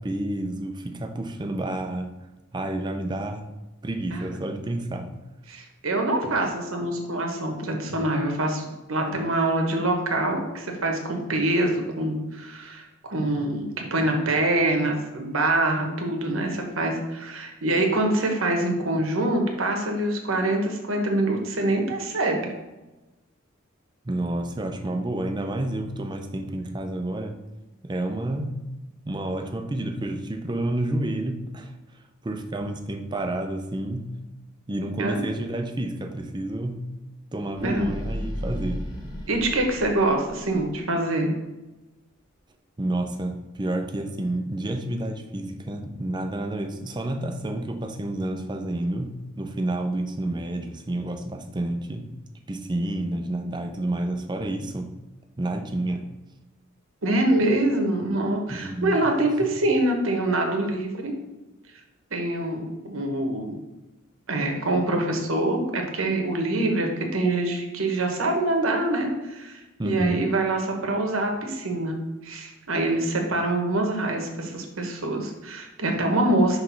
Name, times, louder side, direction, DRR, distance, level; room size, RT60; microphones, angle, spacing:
voice 1, 0.0-2.1 2.5-3.5 3.8-5.1 24.1-27.4 27.8-28.6 29.1-31.7 32.2-34.1 34.7-36.8 37.3-38.9 42.8-52.1 52.5-54.9 55.4-56.1 58.5-59.1 69.8-70.3, right 1 dB, 20° right, 6 dB, 0.5 m, -29 dB
voice 2, 5.5-8.6 8.9-12.8 13.1-22.5 35.0-35.3 37.6-38.0 39.3-41.3 57.0-61.1 62.1-63.5 64.3-72.0 72.2-76.6, right 2 dB, 85° right, 3 dB, 1.2 m, -25 dB
sound 1, 37.5-40.8, equal, 20° left, 1.2 m, -35 dB
5.9 x 3.2 x 5.8 m, 1.1 s
head